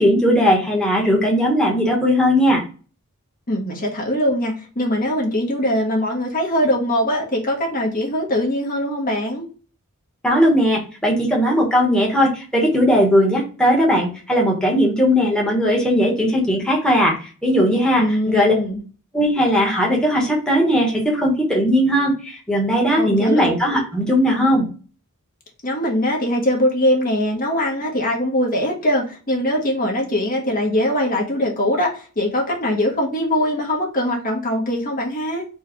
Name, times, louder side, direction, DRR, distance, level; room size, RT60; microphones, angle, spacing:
voice 1, 0.0-2.6 10.2-17.1 17.4-18.5 19.1-24.7, equal, 5° left, -3 dB, 1.1 m, -18 dB
voice 2, 3.5-9.5 18.0-18.8 23.0-23.5 25.6-35.4, left 1 dB, 40° left, 0 dB, 1.1 m, -21 dB
4.5 x 2.3 x 4.4 m, 0.37 s
head